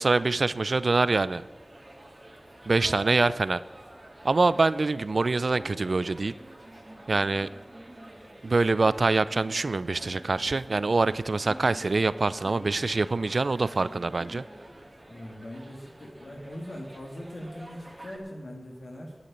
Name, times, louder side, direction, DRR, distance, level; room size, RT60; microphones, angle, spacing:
voice 1, 0.0-1.4 2.7-3.6 4.2-6.3 7.1-7.5 8.4-14.4, right 3 dB, 75° right, 17 dB, 0.4 m, -25 dB
sound 1, 1.3-18.2, right 1 dB, 30° right, 2.0 m, -47 dB
voice 2, 15.1-19.2, equal, 80° left, 1 dB, 2.7 m, -41 dB
11.5 x 7.0 x 8.9 m, 1.4 s
wide cardioid pair, 50°, 0 cm